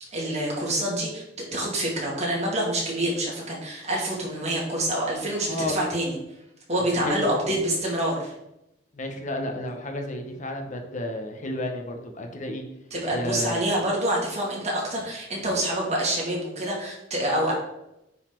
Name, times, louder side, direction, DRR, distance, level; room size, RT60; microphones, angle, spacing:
voice 1, 0.1-6.2 6.7-8.3 12.9-17.5, right 1 dB, 35° right, -3 dB, 2.4 m, -27 dB
voice 2, 5.5-5.9 6.9-7.4 9.0-12.6 13.1-13.6, left 1 dB, 40° left, 4 dB, 1.0 m, -31 dB
8.9 x 4.2 x 4.5 m, 0.87 s
head